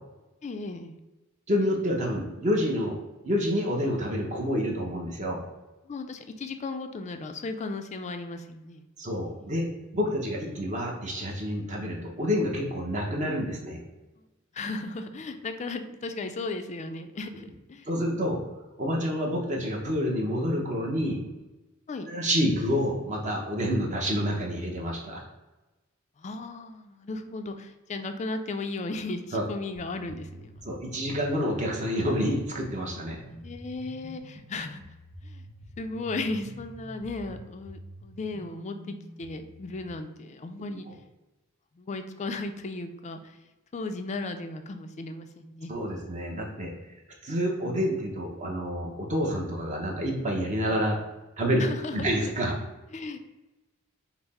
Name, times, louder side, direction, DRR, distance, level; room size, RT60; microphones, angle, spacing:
voice 1, 0.4-1.0 5.9-8.8 14.5-17.9 21.9-22.1 26.2-30.6 33.2-34.8 35.2-35.5 35.8-40.8 41.8-43.2 43.7-45.7 51.6-52.2 52.9-53.2, left 3 dB, 30° left, 8 dB, 0.4 m, -36 dB
voice 2, 1.5-3.0 3.2-5.4 9.0-9.7 9.9-13.8 17.9-18.4 18.8-21.2 22.0-25.2 29.3-29.4 30.6-33.2 40.7-40.8 45.7-46.7 47.2-51.0 51.4-51.7 51.9-52.6, equal, 35° right, 0 dB, 0.7 m, -28 dB
sound 1, 29.7-39.9, equal, 10° right, 0.8 m, -46 dB
5.6 x 2.0 x 4.1 m, 1.1 s
head